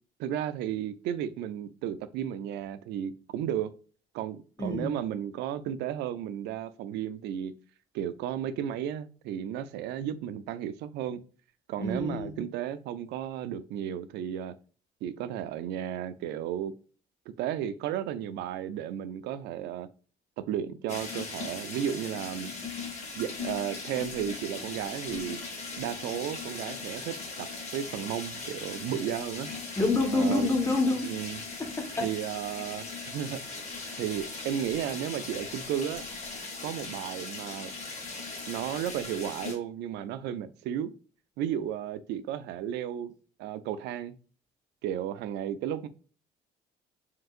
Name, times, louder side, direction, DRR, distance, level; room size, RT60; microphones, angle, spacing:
voice 1, 0.2-3.7 4.1-7.5 7.9-11.2 11.7-14.5 15.0-16.7 17.4-19.9 20.4-22.5 23.2-25.4 25.8-27.5 27.7-29.5 30.1-30.5 31.0-31.4 32.0-33.4 34.0-36.0 36.6-37.7 38.5-40.9 41.4-43.1 43.4-44.1 44.8-45.9, right 10 dB, 85° right, 0.4 m, -33 dB
voice 2, 4.6-4.9 11.8-12.3 29.8-31.1 31.6-32.1, left 2 dB, 15° left, 1.3 m, -27 dB
sound 1, 20.9-39.5, left 4 dB, 40° left, 2.0 m, -39 dB
4.5 x 3.7 x 2.4 m
cardioid pair, 110°, 17 cm